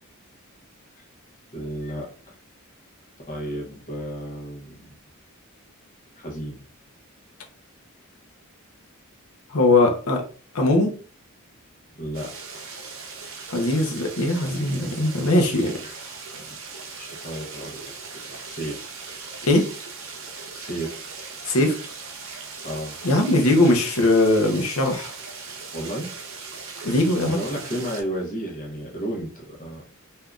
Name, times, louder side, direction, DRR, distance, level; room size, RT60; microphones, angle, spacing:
voice 1, 1.5-2.3 3.3-5.0 6.2-6.6 11.9-12.3 15.8-15.9 16.3-16.4 17.0-17.9 18.2-18.8 20.6-21.1 22.6-23.0 25.7-26.2 27.2-29.8, right 1 dB, 35° left, -1 dB, 0.9 m, -33 dB
voice 2, 9.5-10.2 10.5-10.9 13.5-15.7 19.5-19.7 21.5-21.8 23.0-25.1 26.8-27.4, left 2 dB, 70° left, 3 dB, 0.7 m, -20 dB
sound 1, 12.1-28.0, right 4 dB, 65° right, 0.7 m, -39 dB
3.6 x 2.7 x 2.3 m, 0.39 s
head